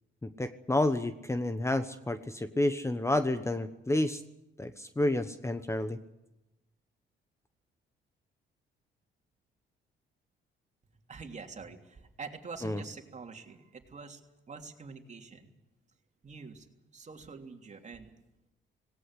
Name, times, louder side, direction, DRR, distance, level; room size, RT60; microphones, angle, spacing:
voice 1, 0.2-4.2 4.6-6.0 12.6-12.8, left 1 dB, 15° left, 10 dB, 1.1 m, -30 dB
voice 2, 11.1-14.2 14.5-15.5 16.2-16.7 16.9-18.1, right 4 dB, 35° right, 4 dB, 3.2 m, -46 dB
18.0 x 18.0 x 9.9 m, 0.94 s
cardioid pair, 90°, 20 cm